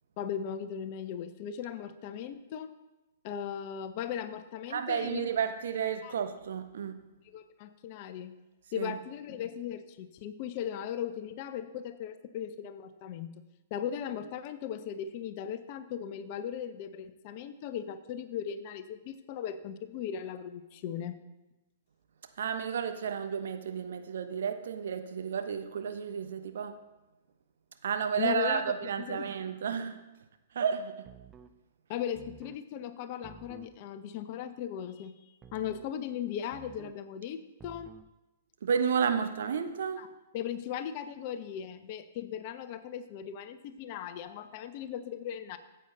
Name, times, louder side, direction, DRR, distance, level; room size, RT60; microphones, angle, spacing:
voice 1, 0.2-2.7 3.2-5.3 6.0-6.1 7.3-8.4 8.7-13.4 13.7-21.2 28.2-29.3 31.9-35.2 35.5-37.9 40.0-40.1 40.3-45.6, left 9 dB, 40° left, 11 dB, 0.8 m, -38 dB
voice 2, 4.7-7.0 8.7-9.0 22.4-26.8 27.8-30.0 30.5-31.1 38.6-40.0, right 7 dB, 60° right, 8 dB, 1.0 m, -32 dB
sound 1, 31.0-31.6 32.1-32.6 33.2-33.8 35.4-35.9 36.5-37.0 37.6-38.1, right 7 dB, 20° right, 0.6 m, -52 dB
13.5 x 8.0 x 4.0 m, 1.0 s
figure-of-eight pair, 110°, 0 cm